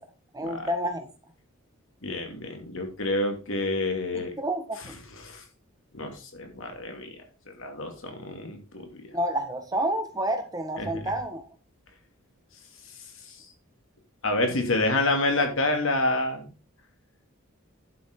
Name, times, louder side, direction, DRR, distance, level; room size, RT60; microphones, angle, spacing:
voice 1, 0.3-1.1 4.1-4.9 9.1-11.5, right 1 dB, 15° right, 6 dB, 1.5 m, -29 dB
voice 2, 2.0-4.3 5.2-5.4 5.9-7.1 7.6-9.1 10.8-11.0 14.2-16.5, left 2 dB, 65° left, 4 dB, 2.8 m, -28 dB
11.5 x 7.6 x 3.9 m, 0.32 s
head